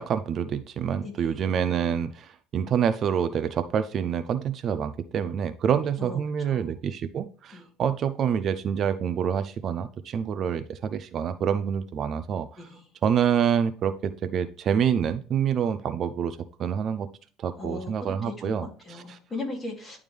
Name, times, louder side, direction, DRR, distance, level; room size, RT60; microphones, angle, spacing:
voice 1, 0.0-12.5 13.0-17.1 17.4-18.7 19.1-19.2, right 8 dB, 45° right, 11 dB, 0.5 m, -27 dB
voice 2, 1.0-1.4 6.0-6.7 7.5-7.6 12.6-12.8 17.6-20.0, left 2 dB, 20° left, 0 dB, 2.5 m, -38 dB
10.5 x 3.5 x 3.3 m, 0.39 s
cardioid pair, 125°, 0 cm